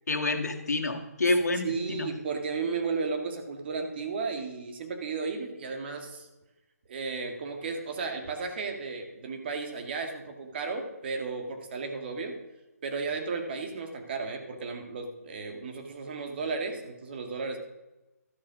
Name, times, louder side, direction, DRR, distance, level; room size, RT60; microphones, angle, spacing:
voice 1, 0.1-2.1, left 2 dB, 80° left, 4 dB, 1.8 m, -28 dB
voice 2, 1.6-6.3 6.9-12.4 12.8-17.6, right 4 dB, 40° right, 4 dB, 1.9 m, -34 dB
12.5 x 8.6 x 6.2 m, 1.0 s
hypercardioid pair, 160°, 9 cm